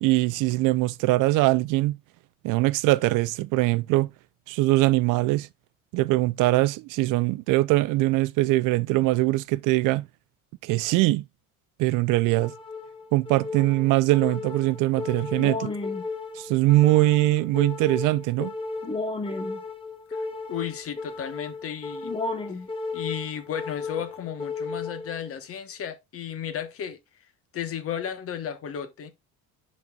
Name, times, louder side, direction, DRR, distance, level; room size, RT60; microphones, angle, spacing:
voice 1, 0.0-2.0 2.4-4.1 4.5-5.5 5.9-10.0 10.6-11.2 11.8-12.5 13.1-15.7 16.4-18.5, right 19 dB, 65° right, 0.5 m, -22 dB
sound 1, 12.4-25.4, left 3 dB, 15° left, 1.0 m, -34 dB
voice 2, 20.1-22.1 22.9-27.0 27.5-29.1, left 9 dB, 40° left, 1.1 m, -34 dB
10.5 x 4.2 x 2.3 m
cardioid pair, 125°, 34 cm